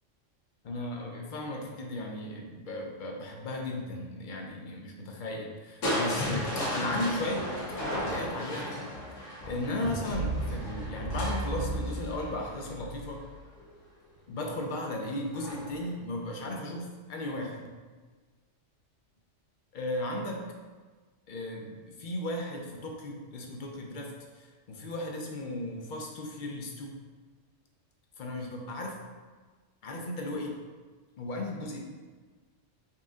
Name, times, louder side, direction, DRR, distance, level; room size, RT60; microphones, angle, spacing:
voice 1, 0.6-7.5 7.9-8.9 9.4-13.2 14.3-17.7 19.7-20.4 21.3-26.9 28.2-29.0 29.8-30.6 31.2-31.8, left 1 dB, 50° left, 1 dB, 0.6 m, -36 dB
Crushing, 5.8-13.8 15.3-15.8 16.3-16.4, equal, 85° left, 1.3 m, -34 dB
4.2 x 2.6 x 3.5 m, 1.4 s
omnidirectional pair, 1.3 m